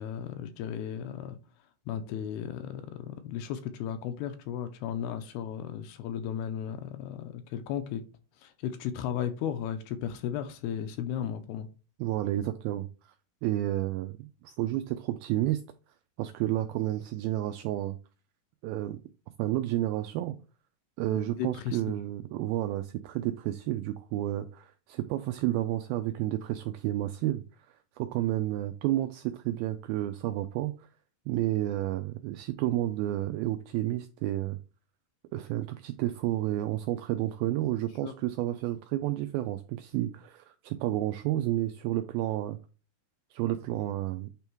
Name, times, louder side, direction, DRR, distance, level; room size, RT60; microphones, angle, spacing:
voice 1, 0.0-1.4 1.9-8.0 8.4-11.7 21.1-22.0 38.0-38.1, left 9 dB, 80° left, 2.4 m, -35 dB
voice 2, 12.0-12.9 13.4-15.6 16.2-18.0 18.6-19.0 19.4-20.3 21.0-27.4 28.0-30.9 31.3-34.6 35.3-42.6 43.3-44.3, right 14 dB, 85° right, 2.1 m, -31 dB
8.8 x 3.5 x 4.5 m
omnidirectional pair, 4.8 m